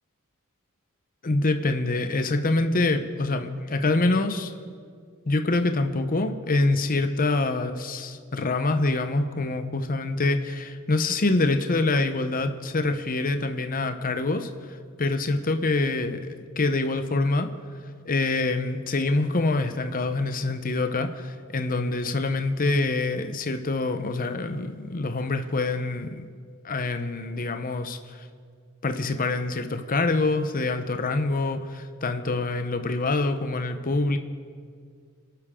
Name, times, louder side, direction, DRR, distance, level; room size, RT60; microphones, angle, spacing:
voice 1, 1.2-4.5 5.3-16.2 16.6-17.5 18.0-26.3 26.6-28.2 28.8-34.2, left 2 dB, 40° left, 8 dB, 0.9 m, -25 dB
26.5 x 11.5 x 3.7 m, 2.1 s
head